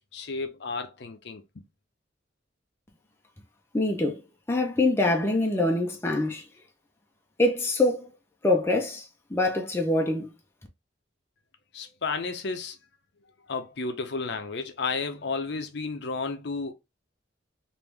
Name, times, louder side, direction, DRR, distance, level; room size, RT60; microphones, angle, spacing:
voice 1, 0.1-1.6 11.7-12.8 13.5-16.7, left 4 dB, 60° left, 0.6 m, -32 dB
voice 2, 3.7-4.2 4.5-6.4 7.4-8.1 8.4-10.3, left 2 dB, 15° left, 0.6 m, -24 dB
3.5 x 2.6 x 3.1 m
head